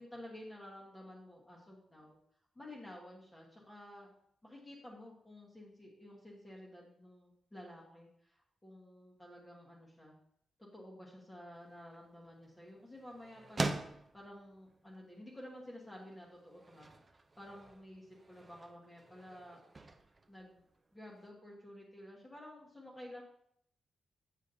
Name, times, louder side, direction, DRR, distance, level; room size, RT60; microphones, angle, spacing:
voice 1, 0.0-2.2 2.5-4.1 4.4-10.2 10.6-16.9 17.4-19.6 20.3-20.7 20.9-23.2, left 1 dB, 10° left, -4 dB, 1.2 m, -52 dB
sound 1, 11.5-21.3, right 3 dB, 25° right, 0.5 m, -45 dB
8.1 x 7.1 x 2.6 m, 0.70 s
wide cardioid pair, 165°, 0 cm